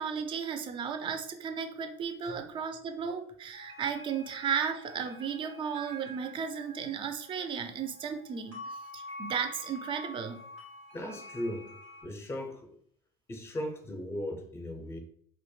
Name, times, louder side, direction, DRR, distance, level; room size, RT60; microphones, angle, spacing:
voice 1, 0.0-10.4, right 7 dB, 35° right, 0.4 m, -35 dB
sound 1, 3.5-12.0, left 1 dB, 90° right, 1.0 m, -47 dB
voice 2, 10.9-11.7 12.0-12.7 13.3-15.0, left 1 dB, 15° left, 0.6 m, -37 dB
2.1 x 2.1 x 3.1 m
hypercardioid pair, 80°, 15 cm